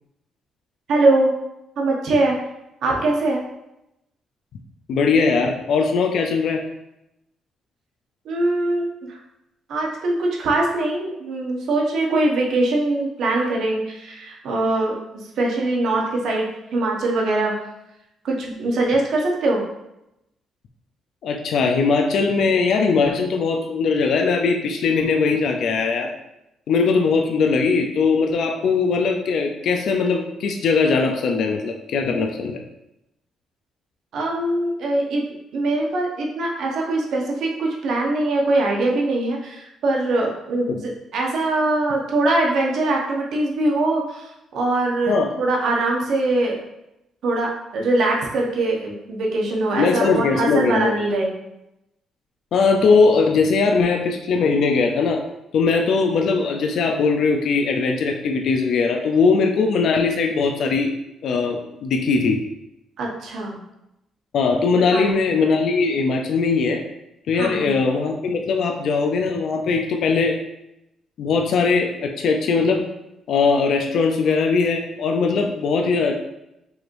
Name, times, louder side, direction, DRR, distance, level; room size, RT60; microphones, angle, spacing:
voice 1, 0.9-1.3 1.8-2.4 2.8-3.4 8.2-9.2 9.7-17.5 18.2-19.6 34.1-35.2 35.5-46.6 47.2-51.3 63.0-63.6 64.9-65.2 67.3-67.8, right 2 dB, 70° right, -1 dB, 0.9 m, -22 dB
voice 2, 4.9-6.6 21.2-26.1 26.7-32.6 40.7-40.8 45.1-45.3 49.8-50.9 52.5-55.2 55.5-60.9 61.2-62.4 64.3-66.8 67.3-70.4 71.2-72.9 73.3-76.2, left 4 dB, 70° left, 3 dB, 0.4 m, -20 dB
4.8 x 3.0 x 2.6 m, 0.88 s
cardioid pair, 90°, 0 cm